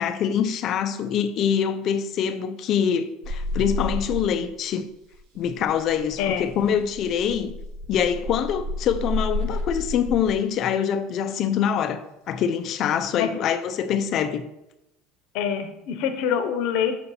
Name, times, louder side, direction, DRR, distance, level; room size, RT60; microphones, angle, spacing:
voice 1, 0.0-4.9 5.4-7.5 7.9-14.4, left 8 dB, 45° left, 0.5 m, -24 dB
sound 1, 3.2-4.7 4.9-10.4 12.1-12.5, left 1 dB, 70° right, 0.9 m, -31 dB
voice 2, 15.3-16.9, left 8 dB, 65° left, 0.8 m, -25 dB
6.8 x 2.7 x 5.5 m
cardioid pair, 140°, 0 cm